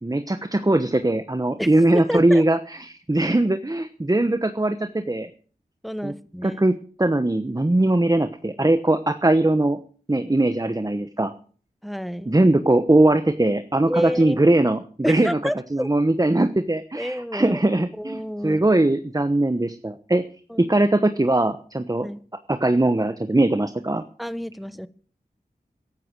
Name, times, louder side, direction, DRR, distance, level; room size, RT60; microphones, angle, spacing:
voice 1, 0.0-5.3 6.0-6.1 6.4-6.7 7.0-9.8 10.1-11.3 12.3-15.4 15.7-20.2 20.6-22.1 22.5-24.0, right 1 dB, 25° right, 10 dB, 1.1 m, -20 dB
voice 2, 1.9-2.4 3.2-3.3 5.8-6.6 11.8-12.3 13.9-14.4 15.0-15.9 16.9-17.6 18.0-18.6 20.5-20.7 22.0-22.2 24.2-24.9, equal, ahead, 14 dB, 1.1 m, -29 dB
14.5 x 12.0 x 6.2 m, 0.42 s
wide cardioid pair, 45°, 16 cm